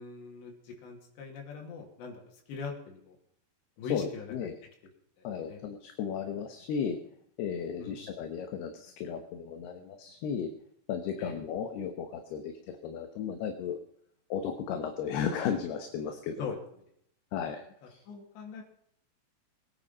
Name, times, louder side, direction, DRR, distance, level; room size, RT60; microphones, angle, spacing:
voice 1, 0.0-2.2 2.5-3.2 3.8-4.3 5.2-5.6 7.8-8.1 11.2-11.4 16.4-16.6 17.8-18.6, left 5 dB, 90° left, 1 dB, 4.9 m, -41 dB
voice 2, 3.9-4.6 5.2-7.0 7.4-10.5 10.9-13.8 14.3-16.6 17.3-18.0, left 7 dB, 75° left, 6 dB, 3.2 m, -35 dB
21.5 x 10.0 x 5.5 m, 0.70 s
omnidirectional pair, 4.9 m